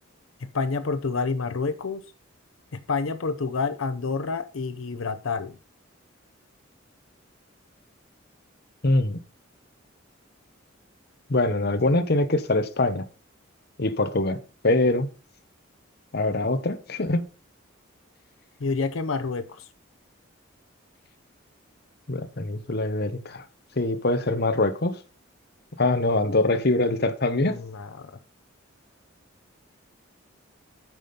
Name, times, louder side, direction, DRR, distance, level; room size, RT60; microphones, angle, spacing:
voice 1, 0.4-2.0 2.7-5.6 18.6-19.7 27.4-28.1, left 4 dB, 85° left, 0.7 m, -28 dB
voice 2, 8.8-9.2 11.3-13.0 13.8-15.1 16.1-17.2 22.1-23.4 23.8-25.0 25.8-27.6, left 2 dB, 50° left, 1.0 m, -23 dB
9.1 x 5.9 x 5.3 m
head